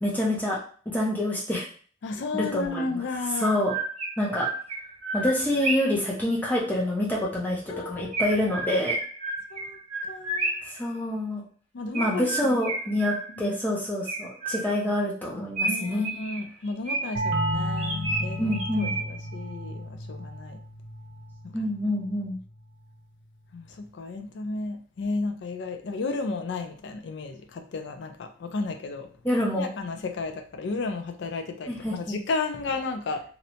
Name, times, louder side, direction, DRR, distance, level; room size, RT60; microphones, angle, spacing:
voice 1, 0.0-0.6 0.9-1.7 2.3-3.0 3.4-3.7 4.2-4.5 5.1-9.0 10.6-11.4 11.9-16.1 18.4-18.9 21.5-22.4 29.2-29.7 31.7-32.2, left 1 dB, 10° left, -5 dB, 0.5 m, -27 dB
voice 2, 2.0-3.6 7.7-8.4 9.5-9.8 10.1-10.6 11.7-12.6 13.3-13.6 15.6-20.6 21.6-21.7 23.5-29.1 29.5-33.2, left 3 dB, 70° left, 6 dB, 0.4 m, -33 dB
Chirp tweet, 2.6-2.7 3.4-6.0 8.1-10.8 11.9-13.5 14.1-14.9 15.6-17.3 17.8-19.3, right 2 dB, 40° right, 0.7 m, -31 dB
sound 1, 17.2-22.6, equal, 70° right, 0.7 m, -33 dB
2.7 x 2.1 x 2.8 m, 0.43 s
head